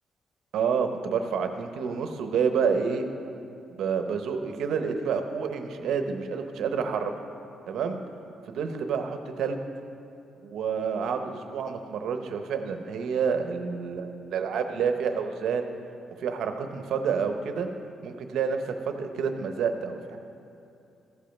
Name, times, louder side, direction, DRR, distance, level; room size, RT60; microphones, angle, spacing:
voice 1, 0.5-3.1 3.8-7.1 7.7-8.0 8.5-9.6 10.4-15.7 16.2-17.7 18.0-20.2, right 6 dB, 75° right, 6 dB, 0.8 m, -28 dB
14.5 x 5.3 x 5.9 m, 2.7 s
cardioid pair, 135°, 0 cm